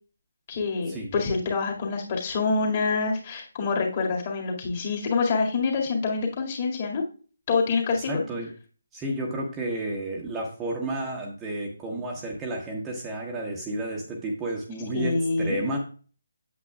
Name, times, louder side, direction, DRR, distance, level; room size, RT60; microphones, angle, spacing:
voice 1, 0.5-7.0 7.5-8.2 14.9-15.8, left 4 dB, 30° left, 0 dB, 2.0 m, -26 dB
voice 2, 8.1-8.5 8.9-15.8, right 1 dB, 10° right, 0 dB, 1.0 m, -31 dB
8.4 x 7.8 x 2.3 m, 0.38 s
figure-of-eight pair, 145°, 0 cm